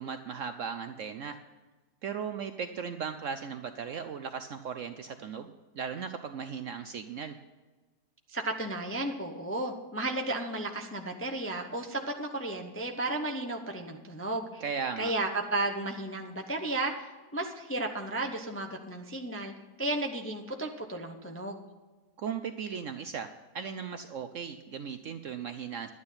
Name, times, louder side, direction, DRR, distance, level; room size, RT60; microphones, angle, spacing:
voice 1, 0.0-1.4 2.0-7.4 14.6-15.1 22.2-25.9, right 6 dB, 65° right, 8 dB, 0.8 m, -37 dB
voice 2, 8.3-14.6 15.0-19.5 19.8-21.7, right 2 dB, 15° left, 4 dB, 0.5 m, -33 dB
11.5 x 9.6 x 5.6 m, 1.3 s
omnidirectional pair, 1.8 m